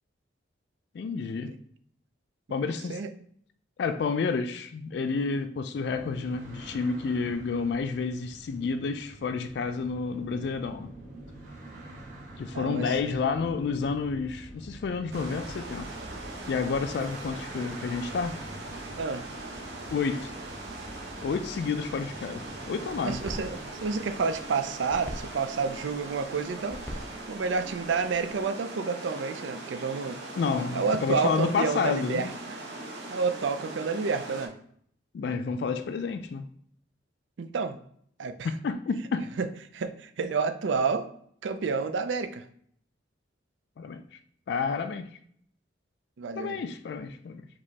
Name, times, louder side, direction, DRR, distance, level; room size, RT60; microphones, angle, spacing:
voice 1, 0.9-1.6 2.5-3.0 3.8-10.9 12.4-15.9 16.5-18.4 19.9-20.3 21.2-23.2 30.4-32.3 35.1-36.5 38.4-39.4 43.8-44.0 44.5-45.2 46.4-47.5, left 5 dB, 65° left, 0.3 m, -30 dB
sound 1, 5.8-24.5, right 1 dB, 45° right, 1.1 m, -46 dB
voice 2, 12.5-13.2 19.0-19.3 22.5-22.6 23.0-27.0 27.3-30.2 30.7-32.3 33.1-34.5 37.4-37.8 38.2-38.5 39.4-39.5 39.7-41.1 41.4-42.4 46.2-46.6, right 5 dB, 80° right, 0.4 m, -29 dB
sound 2, 15.1-34.5, right 2 dB, 65° right, 0.9 m, -41 dB
sound 3, 23.0-28.4, equal, 10° left, 0.7 m, -44 dB
5.1 x 3.0 x 2.8 m
head